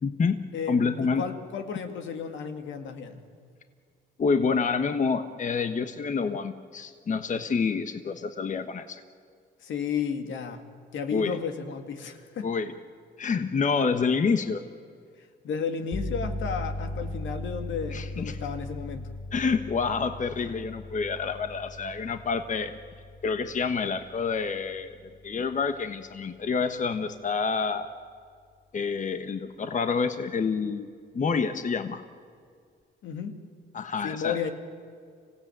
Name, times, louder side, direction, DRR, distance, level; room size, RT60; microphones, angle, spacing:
voice 1, 0.0-1.2 4.2-9.0 11.1-11.4 12.4-12.7 13.2-14.6 17.9-18.4 19.3-22.7 23.2-24.9 25.2-27.9 28.7-30.9 31.1-32.0 33.7-34.4, left 5 dB, 40° left, 8 dB, 1.2 m, -28 dB
voice 2, 0.5-3.2 9.6-10.6 10.9-12.5 15.4-19.1 33.0-33.4 34.0-34.5, left 6 dB, 75° left, 6 dB, 2.2 m, -33 dB
sound 1, 15.9-26.4, left 1 dB, 20° left, 3.7 m, -38 dB
25.5 x 16.5 x 9.2 m, 2.1 s
cardioid pair, 90°, 20 cm